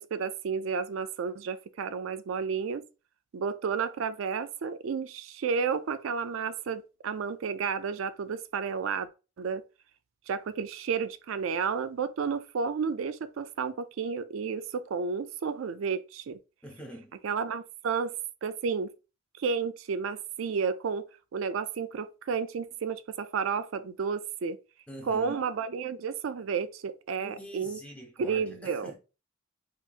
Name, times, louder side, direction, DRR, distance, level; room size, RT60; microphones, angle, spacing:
voice 1, 0.0-2.8 3.3-9.1 9.4-9.6 10.3-16.4 17.2-18.1 18.4-18.9 19.4-21.1 21.3-24.6 25.1-27.8 28.2-28.9, right 6 dB, 80° right, 0.4 m, -31 dB
voice 2, 16.6-17.1 24.9-25.4 27.2-28.9, equal, 5° left, 1.0 m, -44 dB
5.5 x 2.9 x 2.4 m
head